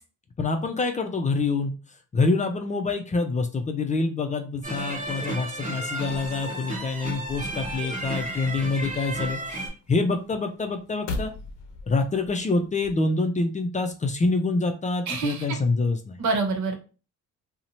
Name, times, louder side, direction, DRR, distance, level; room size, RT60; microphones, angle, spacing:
voice 1, 0.4-1.7 2.1-11.3 11.9-16.2, left 3 dB, 25° left, 5 dB, 0.4 m, -26 dB
sound 1, 4.6-9.7, right 1 dB, 25° right, 1.1 m, -33 dB
sound 2, 8.3-13.1, left 2 dB, 75° left, 0.6 m, -39 dB
voice 2, 15.1-15.6 16.2-16.7, right 4 dB, 70° right, 4 dB, 0.9 m, -26 dB
2.6 x 2.1 x 2.9 m, 0.34 s
cardioid pair, 90°, 30 cm